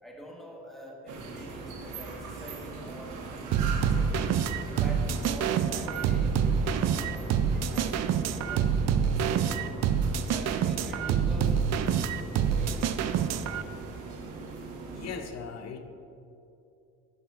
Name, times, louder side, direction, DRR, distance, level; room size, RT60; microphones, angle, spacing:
voice 1, 0.0-4.2 4.8-6.4 6.6-8.0 8.3-8.7 9.0-9.5 10.3-11.7 12.0-12.9, equal, ahead, -1 dB, 1.3 m, -46 dB
sound 1, 1.1-15.2, right 3 dB, 85° right, 1.0 m, -40 dB
sound 2, 3.5-13.6, right 7 dB, 60° right, 0.4 m, -27 dB
voice 2, 14.8-15.8, left 6 dB, 60° left, 7 dB, 0.7 m, -39 dB
12.0 x 5.8 x 2.5 m, 2.7 s
cardioid pair, 90°, 30 cm